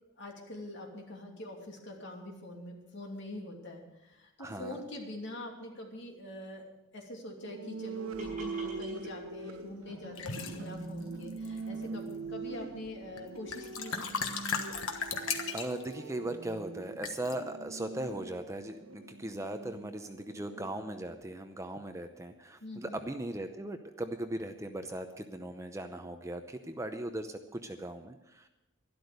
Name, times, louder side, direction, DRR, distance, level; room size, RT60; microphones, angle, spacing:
voice 1, 0.2-6.7 6.9-14.1 22.6-23.0, left 1 dB, 55° left, 1 dB, 2.7 m, -44 dB
voice 2, 4.4-4.8 15.0-28.5, right 1 dB, 15° right, 7 dB, 0.7 m, -39 dB
sound 1, 7.4-21.1, right 4 dB, 80° right, 1.2 m, -43 dB
sound 2, 8.1-15.1, equal, 35° right, 5.7 m, -51 dB
sound 3, 10.2-10.6 11.3-11.8 13.2-13.3 13.5-15.9 17.0-17.3, left 5 dB, 70° left, 1.4 m, -35 dB
12.0 x 12.0 x 6.7 m, 0.97 s
head